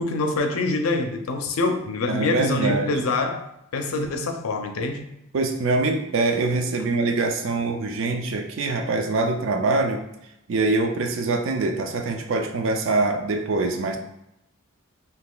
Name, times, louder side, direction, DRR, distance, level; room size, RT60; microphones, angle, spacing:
voice 1, 0.0-3.5 3.7-5.1 6.8-6.9, left 3 dB, 85° left, 5 dB, 0.5 m, -25 dB
voice 2, 2.1-3.0 5.3-10.1 10.5-14.0, right 3 dB, 70° right, 4 dB, 0.4 m, -24 dB
3.6 x 2.8 x 2.3 m, 0.82 s
head